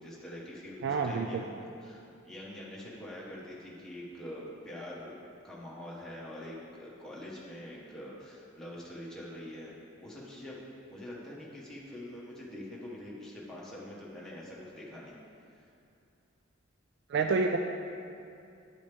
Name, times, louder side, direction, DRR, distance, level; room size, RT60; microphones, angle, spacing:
voice 1, 0.0-1.5 1.8-10.6 10.9-15.1, left 1 dB, 5° left, -6 dB, 1.3 m, -45 dB
voice 2, 0.8-1.4 17.1-17.6, right 4 dB, 60° right, 4 dB, 0.3 m, -28 dB
11.0 x 5.1 x 3.5 m, 2.5 s
head